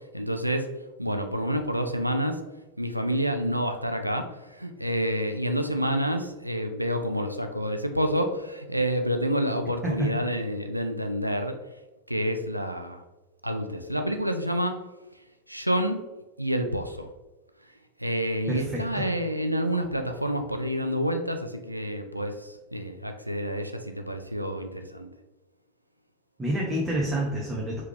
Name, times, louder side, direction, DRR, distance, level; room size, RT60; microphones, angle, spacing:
voice 1, 0.1-0.7 1.0-2.4 2.8-11.6 12.1-13.0 13.4-14.8 15.5-16.0 16.4-17.1 18.0-25.1, equal, 90° right, 6 dB, 0.4 m, -28 dB
voice 2, 9.8-10.2 18.5-19.1 26.4-27.8, right 1 dB, 10° right, -4 dB, 0.8 m, -28 dB
4.8 x 3.4 x 3.2 m, 1.1 s
figure-of-eight pair, 90°, 0 cm